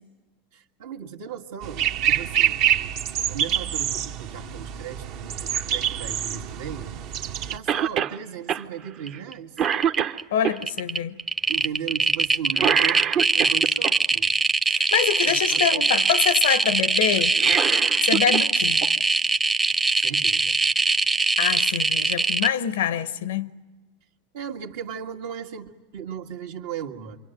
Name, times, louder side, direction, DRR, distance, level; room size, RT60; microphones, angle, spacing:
voice 1, 0.5-2.6 3.3-7.2 7.5-9.5 11.5-14.3 15.3-15.8 19.7-20.6 24.3-27.2, right 8 dB, 75° right, 1.9 m, -36 dB
sound 1, 1.6-7.6, right 10 dB, 60° right, 1.1 m, -26 dB
Cough, 7.7-8.2 8.5-8.6 9.1-9.3 9.6-10.6 12.5-13.9 17.2-18.5 18.8-18.9 20.0-20.1, right 9 dB, 40° right, 0.9 m, -25 dB
sound 2, 9.1-9.3 9.6-10.2 10.6-22.5, right 3 dB, 15° right, 0.8 m, -22 dB
voice 2, 10.3-11.2 14.7-17.4 18.0-18.9 21.4-23.5, left 9 dB, 85° left, 0.9 m, -25 dB
27.5 x 23.5 x 9.2 m
supercardioid pair, 115°, 0 cm